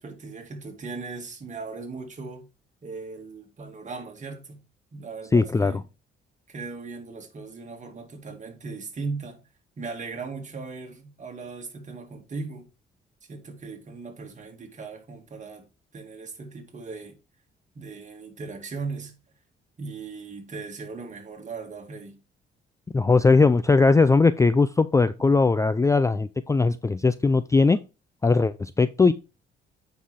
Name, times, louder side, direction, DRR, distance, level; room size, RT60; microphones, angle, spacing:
voice 1, 0.0-2.5 2.8-4.6 4.9-5.8 6.5-9.4 9.8-12.7 13.3-15.7 15.9-17.2 17.7-19.1 19.8-22.2, right 4 dB, 40° right, 2.4 m, -38 dB
voice 2, 5.3-5.8 22.9-27.8 28.2-29.1, left 4 dB, 15° left, 0.4 m, -19 dB
8.4 x 5.7 x 3.6 m
cardioid pair, 90°, 20 cm